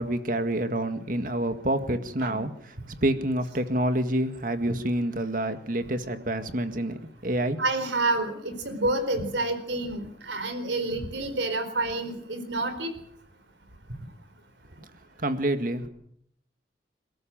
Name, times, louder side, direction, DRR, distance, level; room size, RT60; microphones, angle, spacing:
voice 1, 0.0-2.5 3.0-7.6 15.2-15.9, right 1 dB, 45° right, 9 dB, 1.9 m, -27 dB
voice 2, 7.6-12.9, right 2 dB, 85° right, 9 dB, 4.3 m, -28 dB
28.0 x 14.0 x 7.7 m, 0.71 s
head